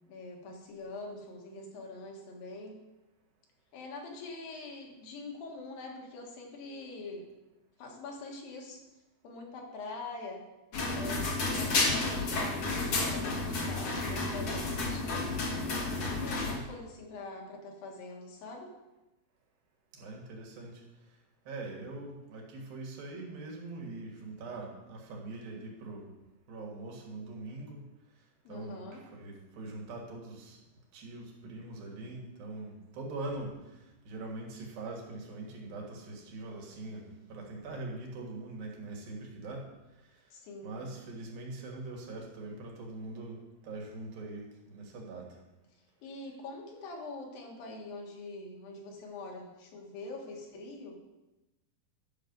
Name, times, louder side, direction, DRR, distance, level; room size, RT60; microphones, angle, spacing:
voice 1, 0.1-2.8 3.7-7.3 7.8-8.8 9.2-10.4 10.9-15.2 15.8-18.7 28.4-29.0 40.3-40.8 46.0-51.0, left 3 dB, 75° left, 0 dB, 3.3 m, -44 dB
sound 1, 10.7-16.5, left 3 dB, 50° left, 2.2 m, -31 dB
voice 2, 16.2-16.6 19.9-20.8 21.5-26.1 26.5-27.8 28.5-30.6 30.9-33.5 34.1-39.7 40.6-45.3, right 2 dB, 75° right, 0 dB, 3.5 m, -42 dB
11.0 x 6.6 x 5.3 m, 1.0 s
omnidirectional pair, 4.2 m